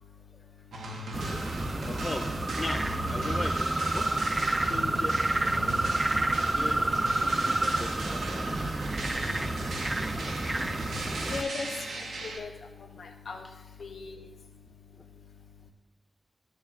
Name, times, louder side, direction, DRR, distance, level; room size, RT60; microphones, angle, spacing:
sound 1, 0.7-12.4, right 2 dB, 90° right, 1.0 m, -38 dB
sound 2, 1.1-11.4, right 2 dB, 30° right, 0.5 m, -29 dB
voice 1, 1.5-5.2 5.6-5.9 6.3-8.5 9.6-9.7 10.4-10.6 10.9-11.2 15.0-15.1, left 2 dB, 40° left, 3 dB, 1.5 m, -39 dB
voice 2, 11.3-11.7 12.2-12.5 13.0-13.4 13.8-14.3, left 4 dB, 80° left, 1 dB, 0.6 m, -37 dB
15.5 x 6.4 x 2.4 m, 1.1 s
cardioid pair, 45°, 0 cm